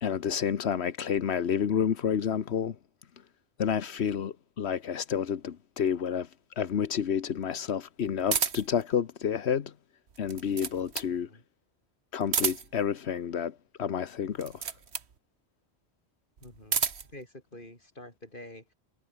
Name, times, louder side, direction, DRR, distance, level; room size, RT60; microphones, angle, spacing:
voice 1, 0.0-2.7 3.6-6.3 6.6-9.7 10.2-11.3 12.1-14.7, left 8 dB, 85° left, 1.3 m, -29 dB
sound 1, 8.3-8.8 10.1-11.2 12.2-12.9 14.3-15.1 16.4-17.1, right 6 dB, 85° right, 1.6 m, -31 dB
voice 2, 16.4-16.8 17.1-18.7, left 1 dB, 50° left, 6.9 m, -47 dB
omnidirectional pair, 1.1 m